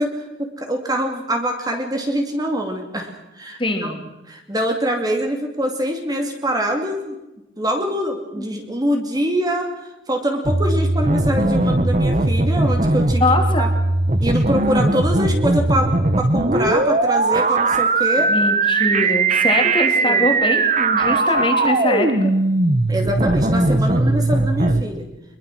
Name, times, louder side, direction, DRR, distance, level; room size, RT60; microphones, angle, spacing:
voice 1, 0.0-4.0 4.3-7.2 7.6-9.7 10.1-13.2 13.6-13.7 14.2-18.3 20.0-20.3 22.9-25.1, equal, 20° right, 4 dB, 2.5 m, -24 dB
voice 2, 3.6-4.0 8.4-8.5 13.2-13.7 18.3-22.3, left 2 dB, 25° left, 4 dB, 3.1 m, -22 dB
sound 1, 10.4-24.8, right 2 dB, 35° right, 1.3 m, -19 dB
24.0 x 22.0 x 6.2 m, 0.99 s
head